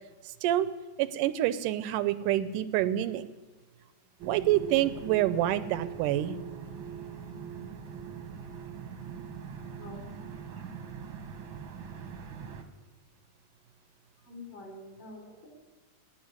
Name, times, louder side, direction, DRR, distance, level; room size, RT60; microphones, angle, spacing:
voice 1, 0.2-0.7 1.0-3.3 4.2-6.4, right 13 dB, 80° right, 14 dB, 2.0 m, -27 dB
sound 1, 4.2-12.6, right 6 dB, 60° right, 1.4 m, -42 dB
voice 2, 9.7-10.1 14.2-15.5, left 2 dB, 70° left, -2 dB, 5.3 m, -46 dB
17.5 x 5.9 x 9.7 m, 1.3 s
omnidirectional pair, 3.8 m